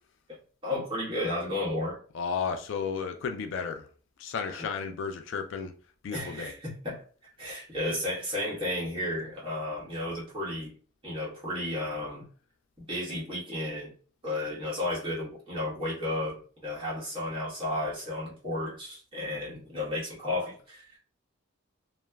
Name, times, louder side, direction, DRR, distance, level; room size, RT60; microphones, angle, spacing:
voice 1, 0.6-2.0 6.1-7.0 7.4-10.7 11.0-12.3 12.9-13.9 14.2-21.0, left 1 dB, 25° right, 1.2 m, -33 dB
voice 2, 2.1-3.9 4.2-5.7 6.0-6.5, left 6 dB, 60° left, 0.3 m, -33 dB
3.1 x 2.1 x 2.2 m
head